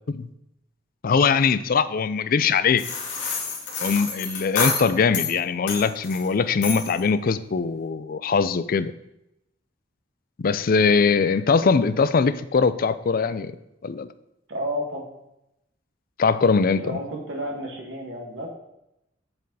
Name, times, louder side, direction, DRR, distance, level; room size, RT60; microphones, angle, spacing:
voice 1, 1.0-2.8 3.8-8.9 10.4-13.5 13.8-14.1 16.2-17.0, left 5 dB, 50° left, 14 dB, 0.4 m, -21 dB
sound 1, 2.8-5.3 5.7-6.3 6.6-7.0, left 5 dB, 85° left, 2.1 m, -28 dB
voice 2, 14.5-15.0 16.7-18.5, equal, 70° right, -1 dB, 2.1 m, -31 dB
7.8 x 7.5 x 4.1 m, 0.86 s
head